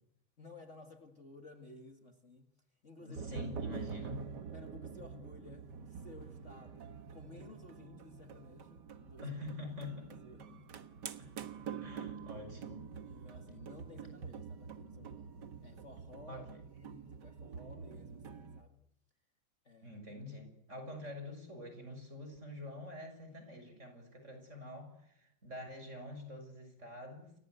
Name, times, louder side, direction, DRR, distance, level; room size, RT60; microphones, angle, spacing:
voice 1, 0.4-2.5 2.8-3.8 4.5-9.3 10.1-10.8 13.1-15.3 15.6-16.4 16.8-18.8 19.6-20.0, left 3 dB, 40° left, 5 dB, 2.3 m, -55 dB
voice 2, 3.0-4.2 9.2-10.1 11.2-11.3 11.8-12.9 16.3-16.6 19.8-27.4, left 2 dB, 35° right, 7 dB, 6.9 m, -46 dB
sound 1, 3.2-18.6, right 6 dB, 65° right, 2.0 m, -46 dB
29.5 x 24.0 x 8.1 m, 0.75 s
omnidirectional pair, 2.1 m